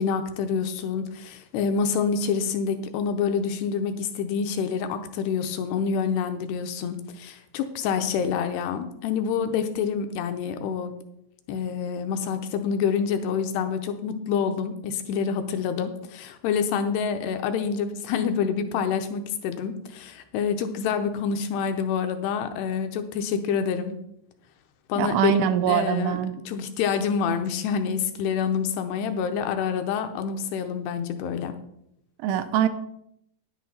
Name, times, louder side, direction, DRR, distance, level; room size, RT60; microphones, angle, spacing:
voice 1, 0.0-10.9 11.5-24.0 24.9-25.4 25.7-26.2 26.5-31.5, left 6 dB, 80° left, 8 dB, 2.5 m, -27 dB
voice 2, 25.0-26.3 32.2-32.7, right 9 dB, 90° right, 8 dB, 3.1 m, -23 dB
10.5 x 10.5 x 4.2 m, 0.77 s
omnidirectional pair, 5.3 m